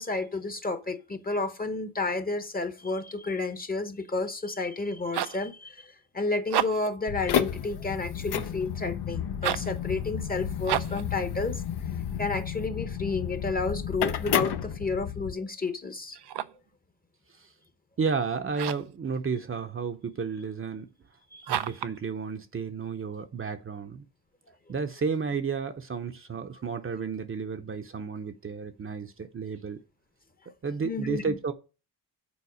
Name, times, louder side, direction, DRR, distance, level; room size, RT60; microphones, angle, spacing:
voice 1, 0.0-11.6 12.2-16.2 21.3-21.5 30.8-31.4, left 3 dB, 20° left, 0.8 m, -31 dB
sound 1, 4.8-5.5 6.4-7.0 9.3-9.8 10.6-11.1 16.1-16.7 18.5-19.0 21.4-22.0, right 11 dB, 80° right, 0.6 m, -31 dB
sound 2, 7.1-15.3, left 9 dB, 75° left, 0.8 m, -31 dB
voice 2, 18.0-20.9 21.5-24.0 24.7-29.8 30.6-31.5, right 5 dB, 35° right, 0.7 m, -32 dB
7.0 x 4.6 x 6.2 m
wide cardioid pair, 130°, 40 cm